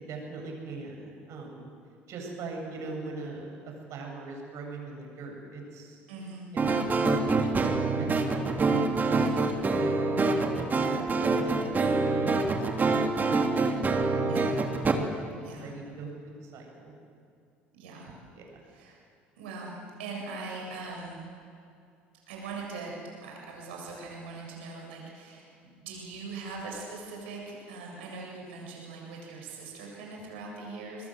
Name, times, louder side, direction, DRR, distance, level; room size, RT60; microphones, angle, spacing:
voice 1, 0.0-1.7 2.1-6.0 6.5-7.5 7.8-8.9 9.7-10.0 10.3-14.7 15.1-16.9 18.3-18.6, right 3 dB, 55° right, 1 dB, 7.8 m, -40 dB
voice 2, 6.1-6.5 9.1-9.5 14.3-14.7 15.4-15.7 17.7-18.1 18.6-19.0 19.4-21.2 22.3-23.0 23.2-31.1, right 3 dB, 75° right, -1 dB, 7.8 m, -41 dB
sound 1, 6.6-14.9, right 3 dB, 30° right, 3.2 m, -26 dB
26.0 x 22.0 x 7.9 m, 2.4 s
hypercardioid pair, 65°, 6 cm